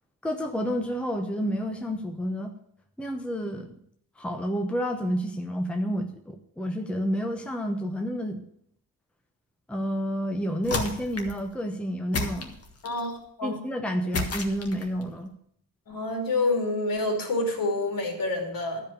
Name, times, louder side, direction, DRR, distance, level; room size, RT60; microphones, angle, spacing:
voice 1, 0.2-2.5 3.0-3.7 4.2-8.4 9.7-12.6 13.4-15.3, equal, 5° left, 3 dB, 0.9 m, -30 dB
sound 1, 10.6-11.4 12.1-13.1 14.1-15.0, left 3 dB, 40° left, 1.7 m, -32 dB
voice 2, 12.8-13.6 15.9-18.8, left 2 dB, 60° left, 2 dB, 3.2 m, -28 dB
12.0 x 5.3 x 8.4 m, 0.69 s
cardioid pair, 125°, 38 cm